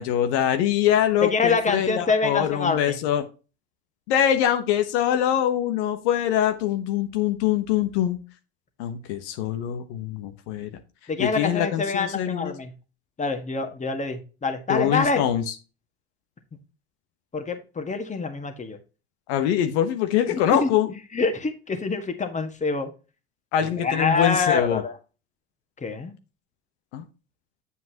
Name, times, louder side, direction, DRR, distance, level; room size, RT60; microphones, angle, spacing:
voice 1, 0.0-3.2 4.1-8.2 8.8-10.7 11.2-12.6 14.7-15.5 19.3-20.9 23.5-24.8 26.9-27.1, left 10 dB, 75° left, 7 dB, 1.1 m, -23 dB
voice 2, 1.2-3.0 11.1-12.7 13.2-15.2 17.3-18.8 20.6-20.7 21.1-22.9 23.8-24.9 25.8-26.1, left 4 dB, 20° left, 7 dB, 1.6 m, -26 dB
8.3 x 7.4 x 2.9 m, 0.32 s
hypercardioid pair, 90°, 34 cm